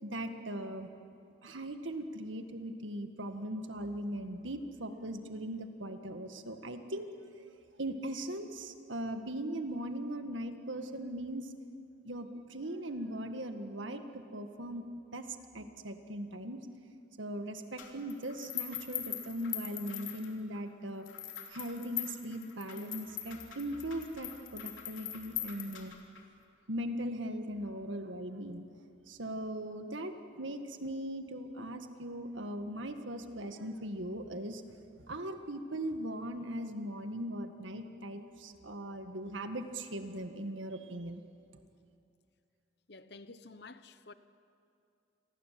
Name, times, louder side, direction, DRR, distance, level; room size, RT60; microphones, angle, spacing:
voice 1, 0.0-0.9 1.4-7.1 7.4-7.5 7.8-11.5 12.0-14.8 15.1-15.3 15.5-16.6 17.2-21.1 21.5-25.9 26.7-28.7 29.1-34.6 35.1-41.2, right 1 dB, 80° right, 1.8 m, -39 dB
sound 1, 17.8-20.6 21.1-26.2, left 11 dB, 90° left, 3.4 m, -41 dB
voice 2, 42.9-44.1, left 3 dB, 55° left, 1.0 m, -51 dB
28.5 x 22.5 x 7.7 m
head